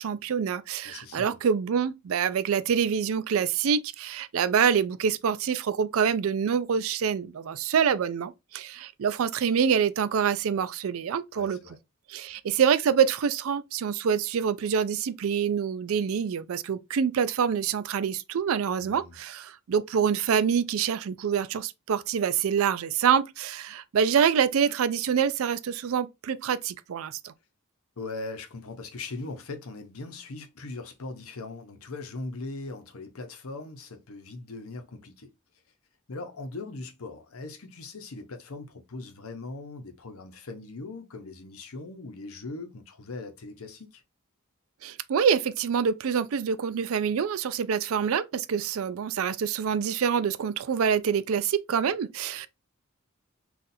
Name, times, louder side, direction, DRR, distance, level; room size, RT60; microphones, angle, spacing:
voice 1, 0.0-11.6 12.1-27.3 44.8-52.5, right 7 dB, 75° right, 0.4 m, -26 dB
voice 2, 0.8-1.4 11.3-11.8 18.8-19.2 28.0-35.3 36.1-44.0, left 3 dB, 85° left, 0.8 m, -40 dB
4.0 x 2.4 x 2.6 m
head